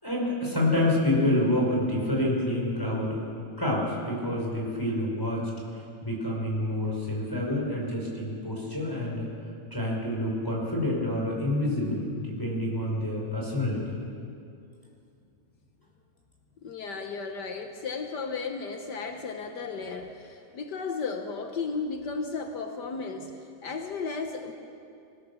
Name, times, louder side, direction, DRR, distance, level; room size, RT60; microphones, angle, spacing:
voice 1, 0.0-3.3 3.6-9.2 9.7-14.0, left 1 dB, 5° left, -4 dB, 5.0 m, -28 dB
voice 2, 16.6-24.5, left 4 dB, 85° left, 4 dB, 0.9 m, -34 dB
25.0 x 16.5 x 7.1 m, 2.6 s
omnidirectional pair, 3.4 m